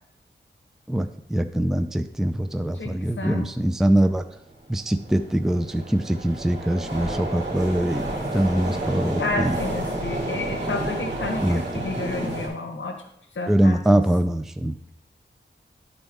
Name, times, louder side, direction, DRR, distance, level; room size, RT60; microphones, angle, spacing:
voice 1, 0.9-4.2 4.7-8.0 8.3-9.6 11.4-11.6 13.5-14.8, right 1 dB, ahead, 8 dB, 0.4 m, -23 dB
voice 2, 2.7-3.5 9.2-12.9 13.3-14.0, left 3 dB, 80° left, 4 dB, 0.8 m, -31 dB
sound 1, 4.5-12.5, right 1 dB, 65° right, 2.2 m, -30 dB
11.0 x 4.0 x 3.5 m, 0.76 s
wide cardioid pair, 95°, 20 cm